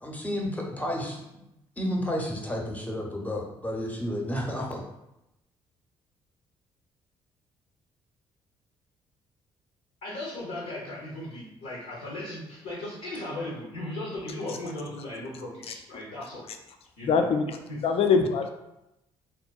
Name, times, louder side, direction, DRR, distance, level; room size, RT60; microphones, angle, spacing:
voice 1, 0.0-1.5 1.8-4.8, equal, 10° left, -1 dB, 0.7 m, -31 dB
voice 2, 10.0-16.4 17.0-17.2 17.7-17.8, left 1 dB, 65° left, -5 dB, 0.7 m, -37 dB
voice 3, 17.0-18.5, left 5 dB, 45° left, 6 dB, 0.4 m, -24 dB
3.7 x 2.1 x 2.3 m, 0.89 s
figure-of-eight pair, 45°, 14 cm